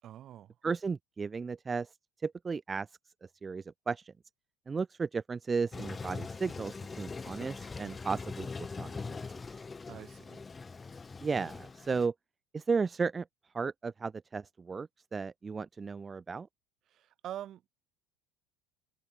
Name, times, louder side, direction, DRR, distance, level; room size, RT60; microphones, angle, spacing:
voice 1, 0.0-0.5 9.9-10.4 16.9-17.7, right 12 dB, 45° right, 4.7 m, -45 dB
voice 2, 0.6-1.9 2.2-2.9 3.4-4.1 4.7-8.5 8.8-9.2 11.2-12.1 12.5-13.2 13.5-16.5, right 5 dB, 25° right, 1.6 m, -34 dB
Toilet flush, 5.7-12.1, left 4 dB, 20° left, 7.2 m, -42 dB
figure-of-eight pair, 65°, 0 cm